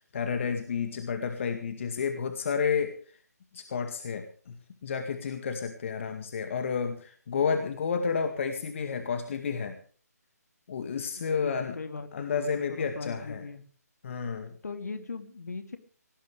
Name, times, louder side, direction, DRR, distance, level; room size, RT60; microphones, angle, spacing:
voice 1, 0.1-3.0 3.5-4.6 4.8-9.8 10.7-11.8 12.1-13.4 14.0-14.5, left 6 dB, 50° left, 7 dB, 2.1 m, -31 dB
voice 2, 11.2-12.3 12.7-13.6 14.6-15.8, left 4 dB, 70° left, 7 dB, 3.0 m, -39 dB
18.5 x 18.0 x 3.5 m, 0.42 s
figure-of-eight pair, 150°, 9 cm